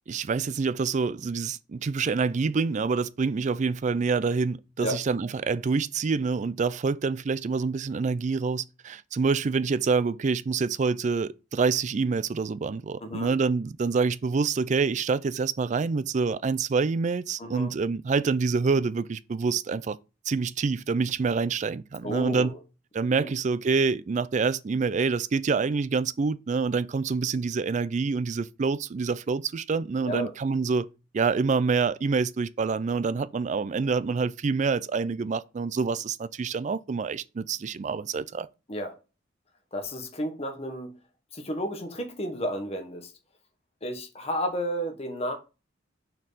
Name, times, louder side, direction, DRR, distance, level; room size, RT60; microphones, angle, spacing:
voice 1, 0.1-20.0 20.3-22.5 22.9-30.9 31.1-38.5, right 4 dB, 40° right, 0.3 m, -26 dB
voice 2, 13.0-13.3 17.4-17.7 22.0-22.6 23.1-23.3 30.0-30.3 38.7-38.9 39.7-41.0 41.3-43.1 43.8-45.3, equal, 30° left, 1.3 m, -32 dB
6.1 x 4.5 x 4.0 m
head